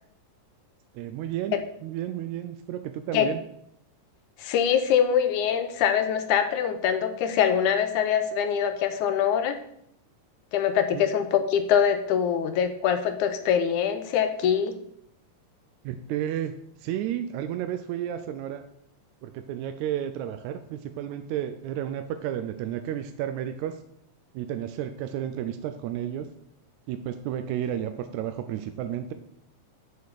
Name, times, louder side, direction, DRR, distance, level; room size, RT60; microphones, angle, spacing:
voice 1, 0.9-1.6 1.8-3.4 10.9-11.0 15.8-16.5 16.8-18.6 19.2-23.8 24.3-26.3 26.9-29.1, right 10 dB, 80° right, 8 dB, 1.7 m, -32 dB
voice 2, 4.4-9.6 10.5-14.7, left 8 dB, 75° left, 8 dB, 2.1 m, -24 dB
7.2 x 6.5 x 6.5 m, 0.73 s
omnidirectional pair, 3.8 m